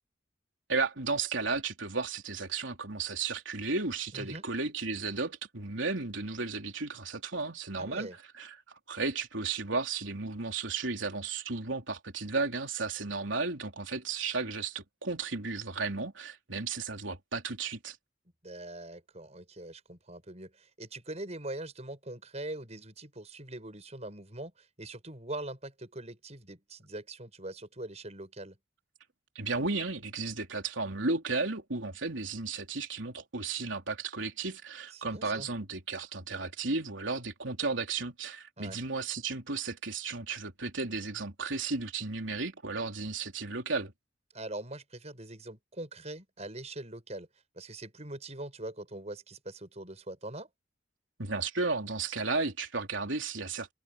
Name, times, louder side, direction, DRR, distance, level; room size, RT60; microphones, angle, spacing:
voice 1, 0.7-8.1 8.3-8.6 8.9-18.0 29.4-43.9 51.2-53.7, right 4 dB, 85° right, 3.5 m, -34 dB
voice 2, 4.1-4.4 7.8-8.2 18.4-28.6 34.9-35.5 38.6-38.8 44.3-47.3 47.5-50.5, right 1 dB, 35° right, 6.7 m, -42 dB
head